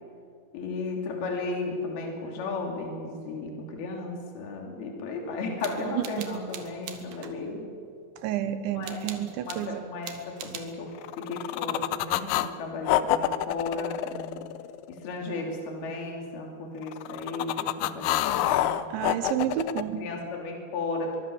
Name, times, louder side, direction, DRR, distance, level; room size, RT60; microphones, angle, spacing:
voice 1, 0.5-7.7 8.7-9.0 9.5-10.1 10.4-14.4 14.9-18.8 19.8-21.2, left 3 dB, 60° left, 1 dB, 4.7 m, -35 dB
sound 1, 5.6-7.4 8.8-9.7 10.0-10.8, right 8 dB, 65° right, 3.1 m, -42 dB
voice 2, 5.9-6.3 8.2-9.9 18.9-20.0, right 10 dB, 85° right, 10 dB, 3.7 m, -30 dB
sound 2, 11.0-12.5 12.9-15.0 16.8-19.8, left 14 dB, 90° left, 3.0 m, -27 dB
23.5 x 23.0 x 7.3 m, 2.3 s
omnidirectional pair, 5.1 m